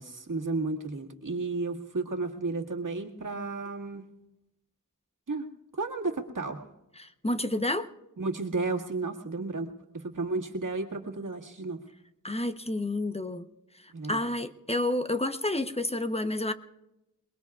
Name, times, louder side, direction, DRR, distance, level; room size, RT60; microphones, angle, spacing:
voice 1, 0.0-4.0 5.3-5.5 5.7-6.6 8.2-11.8 13.9-14.2, right 3 dB, 70° right, 2.0 m, -33 dB
voice 2, 7.0-7.9 12.2-13.5 14.1-16.5, left 1 dB, 20° left, 0.8 m, -29 dB
28.0 x 21.0 x 2.4 m
wide cardioid pair, 55°, 33 cm